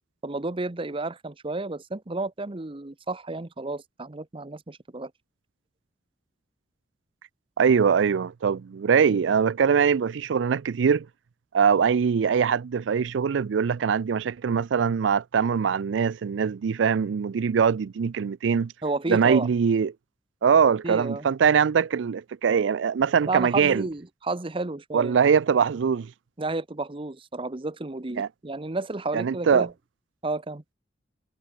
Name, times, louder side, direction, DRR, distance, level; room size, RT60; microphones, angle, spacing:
voice 1, 0.2-5.1 18.8-19.5 20.8-21.3 23.3-25.2 26.4-29.7 30.2-30.6, right 2 dB, 30° right, 0.9 m, -31 dB
voice 2, 7.6-11.1 11.5-18.7 19.1-19.9 20.4-23.8 24.9-26.1 28.2-28.3 29.1-29.7, right 6 dB, 90° right, 0.4 m, -22 dB
head